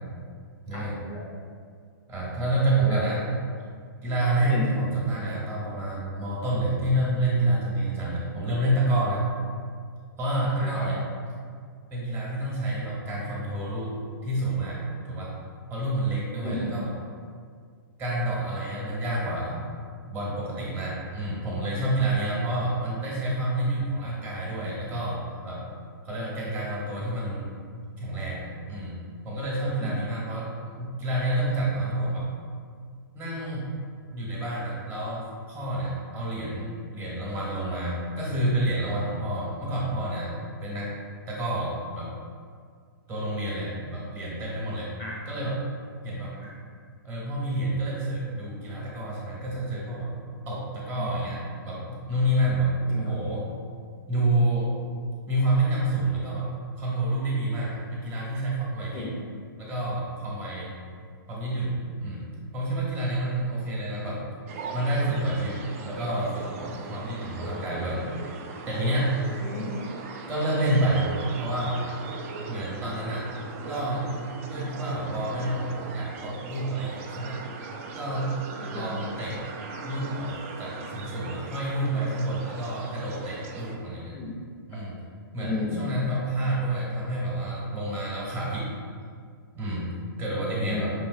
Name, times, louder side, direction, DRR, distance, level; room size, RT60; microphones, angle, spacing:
voice 1, 0.7-1.5 2.8-3.0 4.5-4.6 10.6-10.9 16.4-16.7 29.8-29.9 45.0-45.2 46.4-46.5 51.0-51.1 52.9-53.1 58.9-59.1 69.4-69.8 78.6-78.9 84.1-84.3 85.4-85.9 90.4-90.9, left 3 dB, 25° left, -3 dB, 0.5 m, -35 dB
voice 2, 2.1-3.2 4.0-9.2 10.2-11.0 11.9-14.0 14.2-15.3 15.7-16.9 18.0-19.6 20.0-25.6 26.0-27.5 28.0-29.0 29.2-32.3 33.1-33.8 34.1-40.4 40.6-40.9 41.3-42.1 43.1-44.9 45.3-45.6 46.0-46.4 47.0-50.1 50.5-53.5 54.1-54.7 55.3-56.5 56.8-59.1 59.6-60.7 61.3-62.2 62.5-64.2 64.7-68.1 68.6-69.2 70.3-71.9 72.5-73.3 73.7-77.4 77.9-78.4 78.7-79.4 79.8-84.1 84.7-84.9 85.3-88.7 89.5-89.9 90.2-90.9, right 1 dB, 20° right, -6 dB, 0.9 m, -28 dB
sound 1, 64.5-83.8, right 4 dB, 35° right, 0.3 m, -39 dB
5.4 x 2.9 x 2.4 m, 2.1 s
hypercardioid pair, 150°, 12 cm